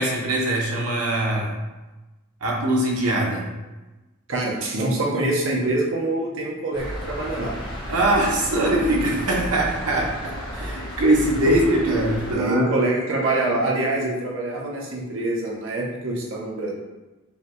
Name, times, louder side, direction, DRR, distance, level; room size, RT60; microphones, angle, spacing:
voice 1, 0.0-1.6 2.4-3.5 7.9-12.7, right 1 dB, 85° right, -2 dB, 0.9 m, -22 dB
voice 2, 4.3-7.5 11.5-11.6 12.4-16.7, right 2 dB, 60° right, -2 dB, 0.8 m, -25 dB
sound 1, 6.7-12.3, equal, 25° left, 0.9 m, -33 dB
5.3 x 2.3 x 3.0 m, 1.1 s
head